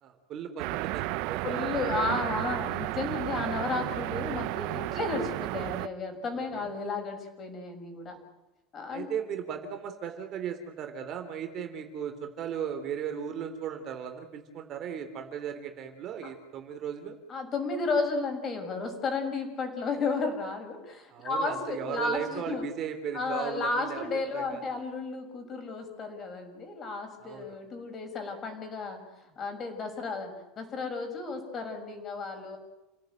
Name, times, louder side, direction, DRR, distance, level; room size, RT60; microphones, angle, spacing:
voice 1, 0.0-1.9 6.5-6.7 8.9-17.2 21.1-24.0 24.3-24.6 27.2-27.6, right 8 dB, 30° right, 6 dB, 3.2 m, -37 dB
sound 1, 0.6-5.9, right 18 dB, 50° right, 0.9 m, -33 dB
voice 2, 1.4-8.2 8.7-9.1 17.3-22.7 23.1-29.1 29.4-32.6, left 3 dB, 25° left, 5 dB, 6.2 m, -33 dB
29.5 x 17.5 x 9.2 m, 1.0 s
supercardioid pair, 165°, 0 cm